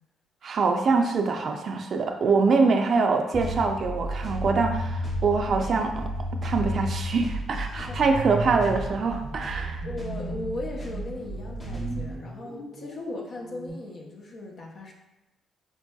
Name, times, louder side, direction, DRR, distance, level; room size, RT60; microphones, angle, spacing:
voice 1, 0.4-6.1 6.4-9.8, right 4 dB, 55° right, 4 dB, 0.3 m, -24 dB
sound 1, 3.3-13.7, equal, 5° right, 0.8 m, -34 dB
sound 2, 3.4-12.2, right 2 dB, 30° left, 0.8 m, -37 dB
voice 2, 7.5-8.0 9.8-14.9, left 2 dB, 65° left, -2 dB, 0.6 m, -38 dB
4.4 x 2.7 x 2.2 m, 0.93 s
cardioid pair, 90°, 0 cm